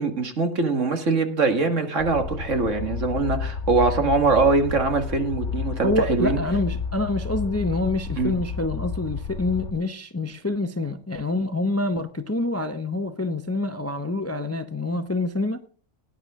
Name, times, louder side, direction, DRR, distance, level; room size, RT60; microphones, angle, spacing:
voice 1, 0.0-6.4 8.2-8.3, right 3 dB, 65° right, 2.1 m, -22 dB
sound 1, 2.0-9.7, left 5 dB, 65° left, 2.1 m, -31 dB
voice 2, 5.8-15.6, left 2 dB, 15° left, 0.6 m, -26 dB
17.5 x 10.0 x 3.6 m
omnidirectional pair, 1.4 m